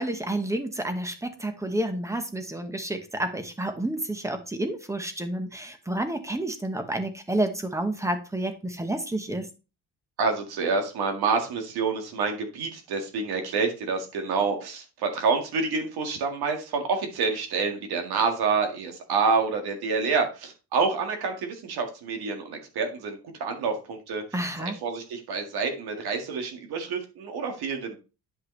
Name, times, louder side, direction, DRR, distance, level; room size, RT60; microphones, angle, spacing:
voice 1, 0.0-9.5 24.3-24.7, right 1 dB, 10° right, 8 dB, 1.0 m, -30 dB
voice 2, 10.2-28.0, right 4 dB, 75° right, 4 dB, 1.9 m, -28 dB
10.0 x 5.5 x 3.2 m, 0.31 s
cardioid pair, 145°, 38 cm